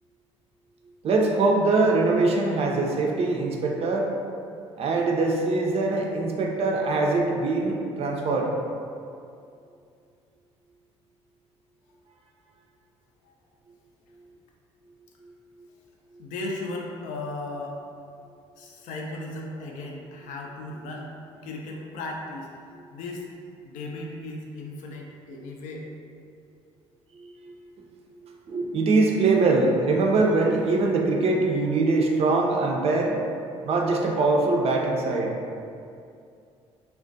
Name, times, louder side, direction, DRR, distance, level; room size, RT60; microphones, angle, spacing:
voice 1, 1.0-4.1 4.8-8.5 27.2-27.5 28.2-33.2 33.6-35.3, right 3 dB, 45° right, 0 dB, 0.4 m, -23 dB
voice 2, 16.2-17.8 18.6-21.1 21.4-22.6 22.9-23.3 23.6-25.9, left 2 dB, 65° left, 0 dB, 0.4 m, -36 dB
2.4 x 2.1 x 2.5 m, 2.4 s
hypercardioid pair, 55°, 14 cm